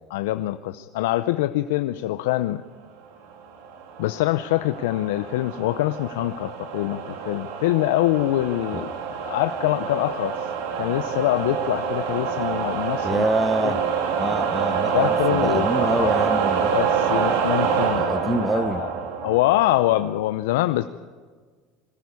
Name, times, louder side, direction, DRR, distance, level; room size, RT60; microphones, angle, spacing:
voice 1, 0.1-2.6 4.0-8.9 9.2-10.3 10.7-13.3 14.9-16.1 16.7-18.9 19.2-20.8, left 15 dB, 80° left, 11 dB, 0.6 m, -24 dB
sound 1, 3.6-20.1, right 6 dB, 80° right, 2.9 m, -26 dB
voice 2, 13.0-13.8 14.2-16.7 17.9-18.9, right 2 dB, 10° right, 12 dB, 0.9 m, -26 dB
21.5 x 14.0 x 9.6 m, 1.5 s
supercardioid pair, 90°, 0 cm